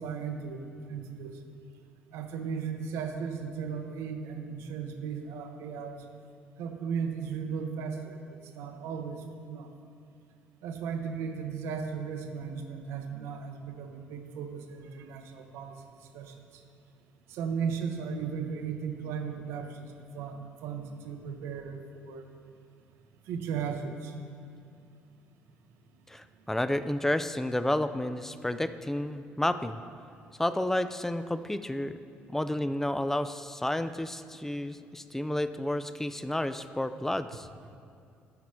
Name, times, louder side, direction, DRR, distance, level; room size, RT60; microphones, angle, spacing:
voice 1, 0.0-1.4 2.1-6.0 6.6-9.7 10.6-15.9 16.1-16.6 17.3-22.2 23.3-24.1, right 6 dB, 75° right, 5 dB, 0.7 m, -36 dB
voice 2, 26.1-29.8 30.4-32.0 32.3-37.5, left 1 dB, 10° left, 12 dB, 0.4 m, -31 dB
10.5 x 4.6 x 4.3 m, 2.4 s
supercardioid pair, 70°, 5 cm